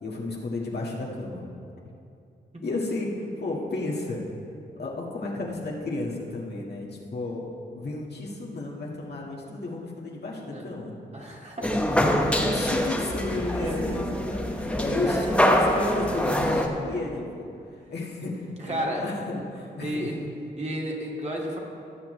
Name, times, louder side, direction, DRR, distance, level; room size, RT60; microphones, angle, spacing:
voice 1, 0.0-1.5 2.6-4.3 4.8-7.5 7.7-10.9 12.4-14.4 14.8-17.5 17.9-20.0, left 2 dB, 60° left, -3 dB, 1.9 m, -33 dB
voice 2, 11.1-11.8 13.6-14.1 14.5-14.8 18.6-19.1 19.8-20.2 20.6-21.6, equal, 35° right, -2 dB, 2.3 m, -32 dB
sound 1, 11.6-16.7, left 1 dB, 5° left, 1.2 m, -24 dB
17.5 x 7.2 x 3.3 m, 2.5 s
cardioid pair, 55°, 19 cm